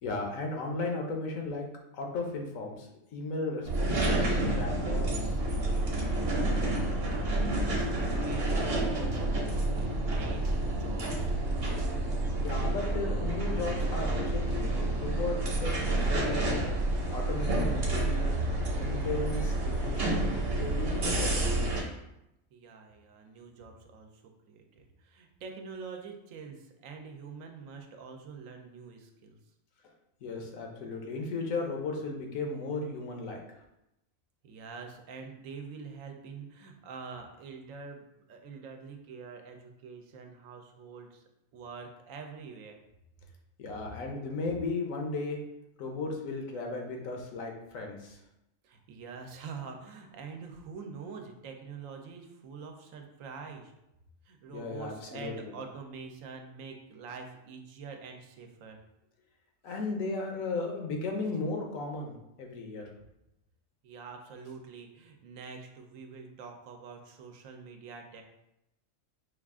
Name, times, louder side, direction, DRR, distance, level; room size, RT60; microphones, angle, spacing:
voice 1, 0.0-1.6 1.9-5.4 12.4-16.5 17.1-18.4 18.7-21.5 30.2-33.4 43.6-45.4 45.8-48.2 54.5-55.6 59.6-62.8, left 3 dB, 80° left, 2 dB, 1.2 m, -35 dB
sound 1, 3.6-21.8, right 2 dB, 50° right, 1.1 m, -29 dB
sound 2, 6.7-12.5, equal, 70° right, 0.5 m, -45 dB
voice 2, 7.0-11.4 22.5-29.4 34.4-41.2 41.5-42.8 48.6-53.7 54.2-58.8 59.7-59.8 63.8-68.2, right 5 dB, 85° right, 4 dB, 1.0 m, -45 dB
4.9 x 2.4 x 3.5 m, 0.87 s
omnidirectional pair, 1.4 m